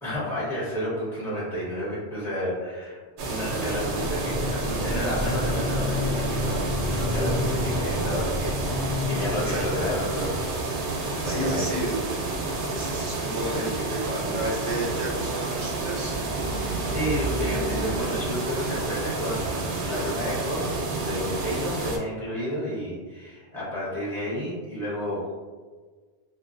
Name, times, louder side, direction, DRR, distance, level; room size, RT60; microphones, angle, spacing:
voice 1, 0.0-11.7 16.5-25.3, equal, ahead, -10 dB, 1.0 m, -31 dB
sound 1, 3.2-22.0, right 3 dB, 85° right, 0.9 m, -30 dB
sound 2, 3.6-11.7 15.7-18.0, left 1 dB, 75° left, 1.0 m, -31 dB
voice 2, 9.4-9.9 11.2-12.0 12.7-16.2, right 1 dB, 45° right, -6 dB, 0.8 m, -32 dB
2.5 x 2.2 x 2.4 m, 1.4 s
omnidirectional pair, 1.1 m